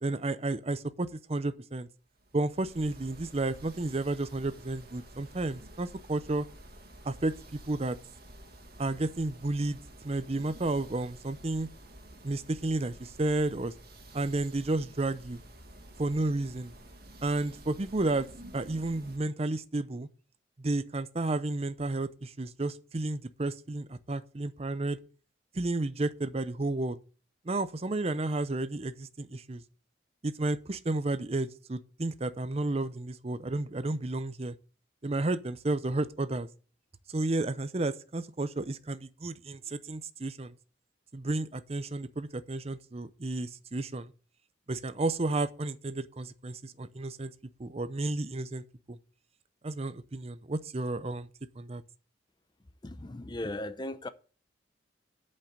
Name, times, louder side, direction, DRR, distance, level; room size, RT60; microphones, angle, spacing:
voice 1, 0.0-1.9 2.3-6.5 7.0-8.0 8.8-9.8 10.0-11.7 12.2-13.7 14.1-15.4 16.0-16.7 17.2-18.3 18.5-20.1 20.6-25.0 25.5-27.0 27.4-29.6 30.2-34.5 35.0-36.5 37.1-40.5 41.1-44.1 44.7-47.3 47.6-49.0 49.6-51.3 51.6-51.8, right 2 dB, 35° right, 0.6 m, -32 dB
sound 1, 2.2-19.2, right 1 dB, 55° right, 2.0 m, -51 dB
voice 2, 52.8-54.1, left 1 dB, 25° left, 0.6 m, -37 dB
8.6 x 5.5 x 7.7 m
head